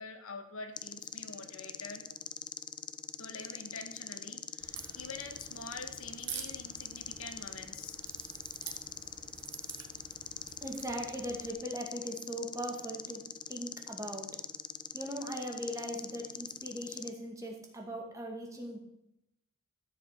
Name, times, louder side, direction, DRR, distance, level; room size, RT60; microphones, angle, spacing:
voice 1, 0.0-2.1 3.2-8.0 10.3-10.4, left 3 dB, 85° left, 7 dB, 1.6 m, -46 dB
sound 1, 0.8-17.1, left 7 dB, 20° left, 0.4 m, -43 dB
Crack, 4.6-11.5, right 7 dB, 55° right, 1.8 m, -48 dB
voice 2, 10.6-14.3 14.9-18.8, equal, 15° right, 1 dB, 2.1 m, -39 dB
13.5 x 7.2 x 6.6 m, 0.82 s
head